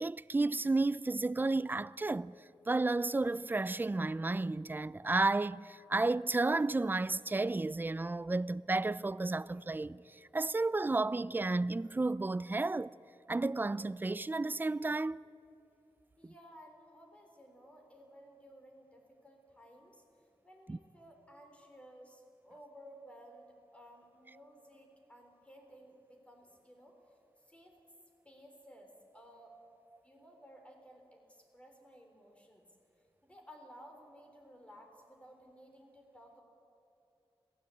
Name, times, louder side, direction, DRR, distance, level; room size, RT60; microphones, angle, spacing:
voice 1, 0.0-2.3 2.7-10.0 10.3-12.9 13.3-15.2 16.2-16.3 20.7-20.8, right 2 dB, 20° right, 0.4 m, -32 dB
voice 2, 16.2-20.0 20.4-26.9 27.5-27.8 28.2-29.6 30.0-32.6 33.2-36.4, equal, 15° left, 3.9 m, -56 dB
22.0 x 16.5 x 8.5 m
wide cardioid pair, 120°, 10 cm